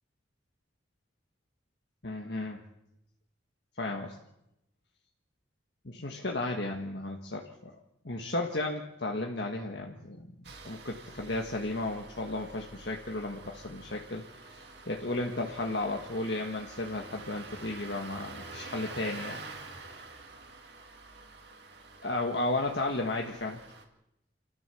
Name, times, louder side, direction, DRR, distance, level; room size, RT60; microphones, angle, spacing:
voice 1, 2.0-2.6 3.8-4.1 5.8-7.7 8.0-10.3 10.6-14.2 14.9-19.4 22.0-23.6, left 2 dB, 60° left, 1 dB, 1.6 m, -34 dB
Engine starting, 10.4-23.8, right 3 dB, 60° right, 2.3 m, -47 dB
29.0 x 13.5 x 7.0 m, 0.87 s
head